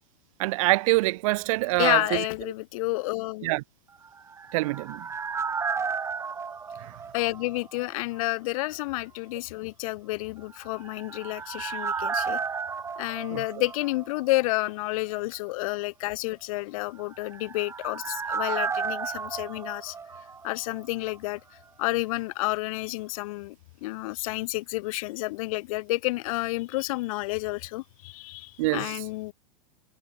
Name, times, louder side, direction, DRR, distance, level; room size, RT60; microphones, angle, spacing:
voice 1, 0.4-2.2 3.4-3.6 4.5-5.1 6.8-6.9 13.3-13.4 28.6-28.9, right 21 dB, 55° right, 1.5 m, -25 dB
voice 2, 1.8-3.5 7.1-12.4 13.0-20.0 20.4-21.4 21.8-23.6 23.8-29.3, left 20 dB, 55° left, 3.4 m, -30 dB
sound 1, 4.0-7.9 8.1-8.2 10.6-14.4 14.6-14.7 17.0-20.8 21.1-21.2, right 5 dB, 15° right, 1.8 m, -33 dB
supercardioid pair, 140°, 21 cm